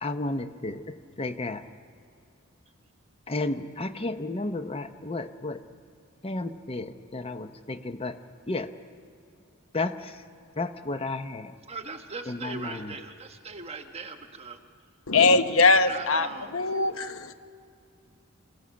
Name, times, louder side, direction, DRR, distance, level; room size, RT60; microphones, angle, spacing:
voice 1, 0.0-1.6 3.3-5.6 6.2-8.2 8.5-8.7 9.7-10.2 10.6-11.5 12.3-12.9, left 2 dB, 25° left, 0.7 m, -32 dB
voice 2, 11.7-14.6 15.8-16.6, right 4 dB, 30° right, 1.3 m, -39 dB
voice 3, 15.1-17.3, left 3 dB, 75° left, 1.0 m, -22 dB
27.5 x 17.0 x 6.4 m
head